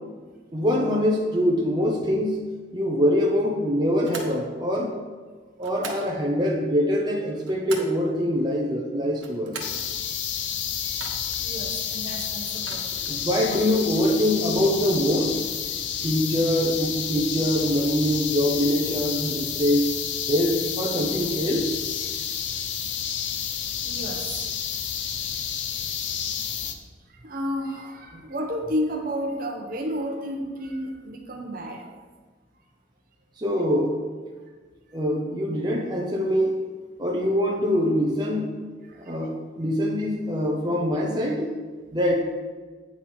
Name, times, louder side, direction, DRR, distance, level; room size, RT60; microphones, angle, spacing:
voice 1, 0.5-2.4 2.7-4.9 5.6-9.6 13.1-15.4 16.0-19.9 20.3-21.7 28.1-28.2 33.4-34.0 34.9-36.6 37.0-38.6 39.0-41.5 41.9-42.2, equal, 20° right, -1 dB, 0.8 m, -24 dB
sound 1, 4.0-4.4 5.6-6.1 7.2-8.0 9.1-9.8 10.9-11.4 12.5-13.2, right 4 dB, 80° right, 1.2 m, -40 dB
sound 2, 9.6-26.7, left 8 dB, 70° left, 0.6 m, -30 dB
voice 2, 11.4-13.6 23.8-24.5 27.1-31.9 38.8-39.2, equal, 45° right, 3 dB, 1.0 m, -32 dB
8.7 x 5.9 x 4.4 m, 1.4 s
head